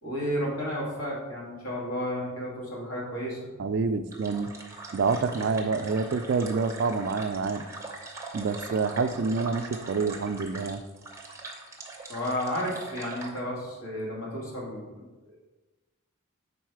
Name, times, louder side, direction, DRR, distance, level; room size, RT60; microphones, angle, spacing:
voice 1, 0.0-3.5 12.1-15.0, equal, 75° left, -4 dB, 2.0 m, -32 dB
voice 2, 3.6-4.5 4.9-7.6 8.3-10.8, right 4 dB, 55° right, 10 dB, 0.3 m, -27 dB
sound 1, 4.1-13.4, right 3 dB, 15° right, 0.7 m, -42 dB
5.5 x 4.2 x 4.6 m, 1.2 s
head